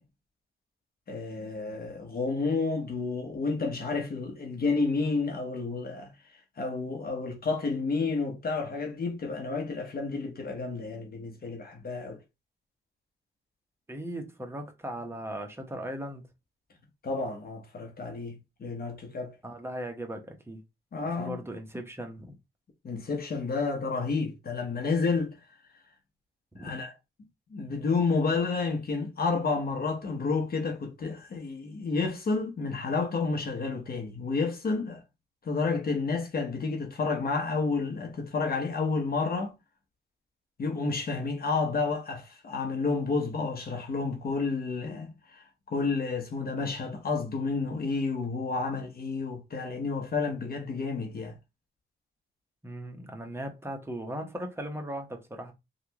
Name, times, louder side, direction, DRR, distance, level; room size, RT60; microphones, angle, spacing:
voice 1, 1.1-6.1 6.6-12.2 17.0-19.4 20.9-21.4 22.8-25.3 26.6-26.9 27.5-35.0 35.4-39.5 40.6-51.4, left 4 dB, 45° left, 1.0 m, -30 dB
voice 2, 13.9-16.2 19.4-20.6 21.2-22.3 26.5-26.7 52.6-55.5, right 1 dB, 10° right, 1.0 m, -38 dB
3.3 x 2.4 x 2.9 m
cardioid pair, 80°, 21 cm